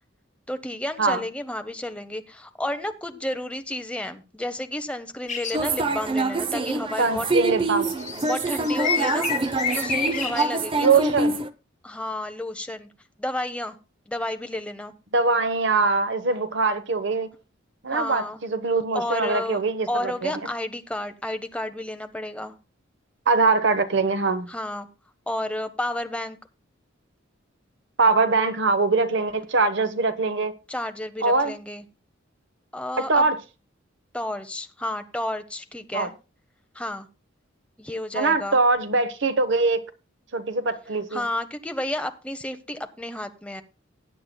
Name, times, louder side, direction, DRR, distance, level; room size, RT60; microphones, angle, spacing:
voice 1, 0.5-7.3 8.3-9.3 9.7-11.1 11.8-12.9 13.2-13.8 14.1-14.9 17.9-18.4 18.9-19.6 19.9-22.6 24.5-24.9 25.3-26.4 30.7-31.8 32.7-33.3 34.1-36.1 36.7-37.1 37.8-38.6 41.1-43.6, left 1 dB, 5° left, 0.8 m, -31 dB
sound 1, 5.3-5.6 6.0-6.1 7.8-10.5, left 6 dB, 35° left, 2.0 m, -29 dB
sound 2, 5.5-11.5, right 3 dB, 25° right, 0.6 m, -25 dB
voice 2, 7.0-7.9 10.8-11.3 15.1-17.3 17.8-20.3 23.3-24.5 28.0-30.5 31.2-31.5 33.1-33.4 35.9-36.1 38.1-39.8 40.3-41.2, right 3 dB, 60° right, 1.0 m, -22 dB
19.5 x 8.7 x 2.2 m
head